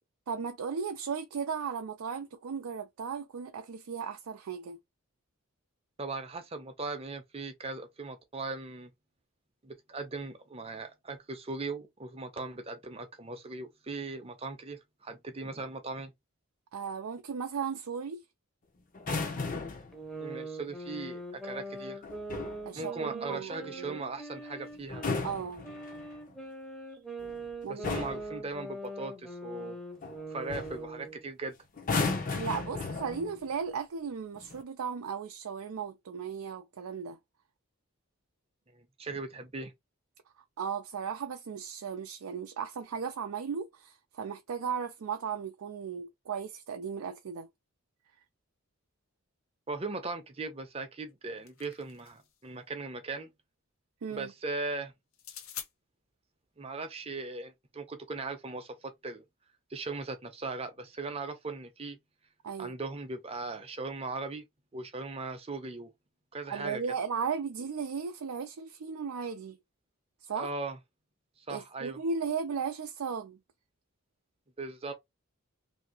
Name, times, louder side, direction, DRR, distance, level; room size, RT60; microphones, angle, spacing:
voice 1, 0.3-4.8 16.7-18.2 22.7-24.0 25.2-25.6 27.6-28.0 32.3-37.2 40.6-47.5 54.0-54.3 62.4-62.8 66.5-69.6 70.2-70.5 71.5-73.4, right 6 dB, 90° right, 0.4 m, -36 dB
voice 2, 6.0-8.9 9.6-16.1 20.2-22.0 22.8-25.1 27.7-29.8 30.3-31.5 39.0-39.7 49.7-53.3 54.1-54.9 56.6-59.2 59.7-62.0 62.6-64.4 64.7-65.9 66.3-66.8 70.4-70.8 71.5-72.0 74.6-74.9, right 3 dB, 30° right, 0.6 m, -39 dB
sound 1, 18.9-19.9 22.0-22.6 24.8-26.2 27.2-27.4 27.8-28.3 30.0-30.2 30.5-30.8 31.8-33.4 34.4-34.6, left 4 dB, 40° left, 0.7 m, -34 dB
sound 2, 19.9-25.2 25.6-31.2, right 2 dB, 5° left, 0.7 m, -42 dB
sound 3, 51.1-52.4 55.1-55.7, left 9 dB, 75° left, 0.7 m, -45 dB
2.9 x 2.7 x 2.9 m
head